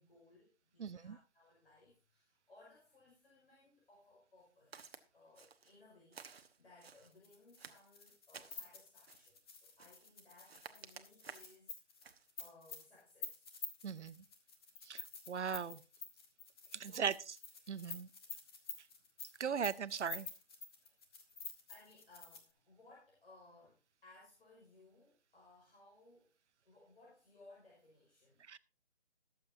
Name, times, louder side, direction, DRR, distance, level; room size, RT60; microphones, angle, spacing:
voice 1, 0.0-11.8 12.4-13.5 16.8-17.2 20.8-20.9 21.7-26.3 26.7-28.4, left 2 dB, 60° left, -4 dB, 5.5 m, -63 dB
voice 2, 0.8-1.2 13.8-14.2 14.8-15.8 16.7-17.2 17.7-18.1 19.4-20.3 28.5-28.6, right 7 dB, 85° right, 17 dB, 0.8 m, -38 dB
Walk footsteps, 4.7-5.0 5.4-5.8 6.1-7.1 7.6-8.7 9.1-9.4 9.8-10.1 10.4-11.6 12.0-12.3, right 6 dB, 60° right, 1.1 m, -54 dB
sound 1, 7.1-22.5, left 4 dB, 20° left, 1.3 m, -49 dB
21.5 x 7.7 x 2.7 m, 0.31 s
hypercardioid pair, 165°, 34 cm